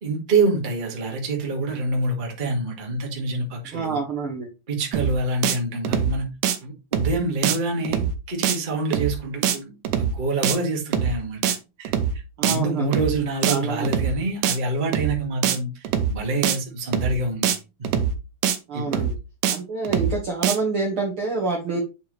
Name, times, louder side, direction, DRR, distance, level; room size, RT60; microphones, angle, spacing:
voice 1, 0.0-4.0 4.7-6.3 6.6-11.5 11.8-18.0 18.7-19.0, right 2 dB, 20° right, 1.4 m, -26 dB
voice 2, 3.7-4.5 12.4-13.0 13.5-14.1 18.7-19.1 19.5-21.8, right 4 dB, 55° right, 1.6 m, -27 dB
sound 1, 4.9-5.2 5.4-5.6 5.8-6.2 6.4-6.6 6.9-7.2 7.4-7.6 7.8-8.2 8.4-8.6 8.9-9.2 9.4-9.6 9.8-10.2 10.4-10.6 10.9-11.2 11.4-11.6 11.8-12.2 12.4-12.6 12.9-13.2 13.4-13.6 13.8-14.2 14.4-14.6 14.9-15.2 15.4-15.6 15.8-16.2 16.4-16.6 16.9-17.2 17.4-17.6 17.8-18.2 18.4-18.6 18.9-19.2 19.4-19.6 19.8-20.2 20.4-20.6, right 8 dB, 80° right, 2.4 m, -23 dB
8.3 x 4.6 x 3.3 m
omnidirectional pair, 3.9 m